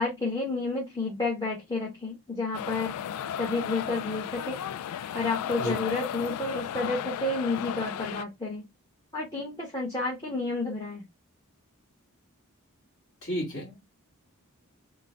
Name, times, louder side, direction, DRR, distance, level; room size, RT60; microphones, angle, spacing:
voice 1, 0.0-2.9 3.4-4.6 5.1-8.6 9.1-11.0, left 3 dB, 15° left, 1.1 m, -30 dB
sound 1, 2.5-8.2, left 9 dB, 85° left, 0.3 m, -34 dB
voice 2, 13.2-13.8, equal, 60° left, 2.2 m, -32 dB
3.7 x 2.1 x 3.8 m
head